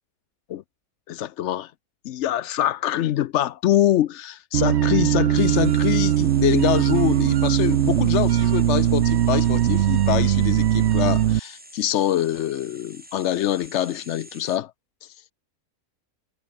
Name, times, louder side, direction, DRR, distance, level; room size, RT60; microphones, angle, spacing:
voice 1, 1.1-1.7 2.0-14.7, left 12 dB, 65° left, 0.7 m, -24 dB
sound 1, 4.5-11.4, right 11 dB, 60° right, 0.8 m, -20 dB
sound 2, 5.4-14.6, equal, 5° right, 3.6 m, -46 dB
omnidirectional pair, 1.6 m